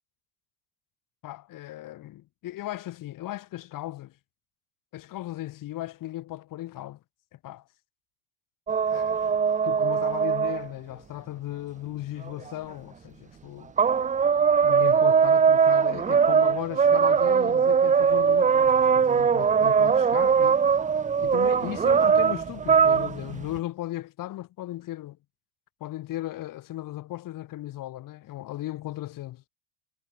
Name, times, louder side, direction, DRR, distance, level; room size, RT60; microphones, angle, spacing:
voice 1, 1.2-4.1 4.9-7.0 7.3-7.6 8.9-13.7 14.6-20.6 21.2-25.2 25.8-29.4, left 15 dB, 50° left, 4.9 m, -37 dB
sound 1, 8.7-10.7 12.3-12.4 13.8-23.6, right 6 dB, 20° right, 0.8 m, -21 dB
supercardioid pair, 105°, 40 cm